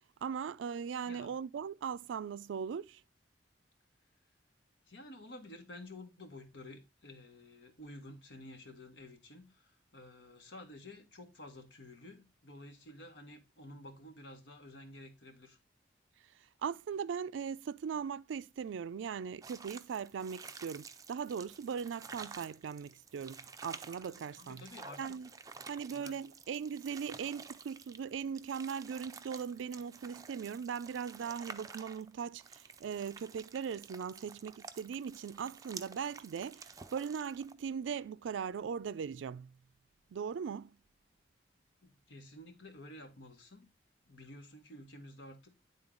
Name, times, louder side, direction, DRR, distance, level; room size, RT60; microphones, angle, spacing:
voice 1, 0.2-3.0 16.6-24.7 25.0-25.3 25.7-39.5 40.1-40.8, right 7 dB, 90° right, 0.3 m, -39 dB
voice 2, 4.9-15.6 24.1-25.0 25.9-26.2 41.8-43.7 44.0-45.6, left 1 dB, 85° left, 1.4 m, -51 dB
sound 1, 19.4-37.5, right 5 dB, 20° right, 0.4 m, -51 dB
9.7 x 3.8 x 3.8 m
head